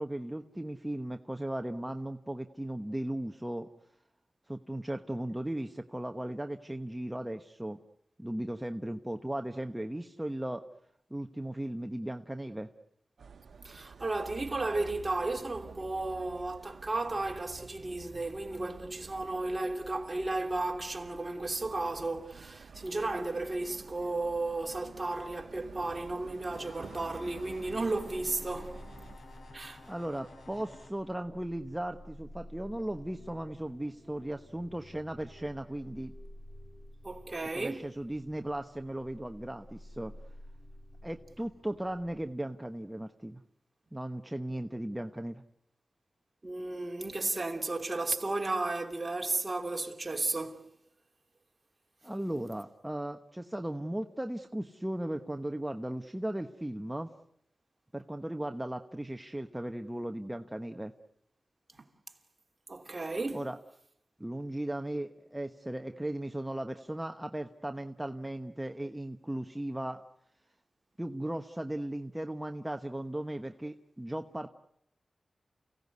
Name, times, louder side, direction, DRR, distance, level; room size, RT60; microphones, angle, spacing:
voice 1, 0.0-3.7 4.5-7.8 8.2-10.6 11.1-12.7 29.9-36.1 37.5-40.1 41.0-43.4 43.9-45.4 52.0-57.1 57.9-60.9 63.3-63.6 64.2-70.0 71.0-74.5, right 1 dB, 10° right, 1.1 m, -37 dB
sound 1, 13.2-29.2, right 5 dB, 85° right, 1.1 m, -51 dB
voice 2, 13.6-28.8 29.5-29.8 37.0-37.8 46.4-50.6 61.7-61.8 62.7-63.4, right 2 dB, 35° right, 3.0 m, -34 dB
sound 2, 26.5-30.9, left 2 dB, 75° left, 4.5 m, -53 dB
sound 3, 27.4-42.3, equal, 20° left, 3.5 m, -52 dB
29.5 x 17.0 x 9.5 m
wide cardioid pair, 70°, 0 cm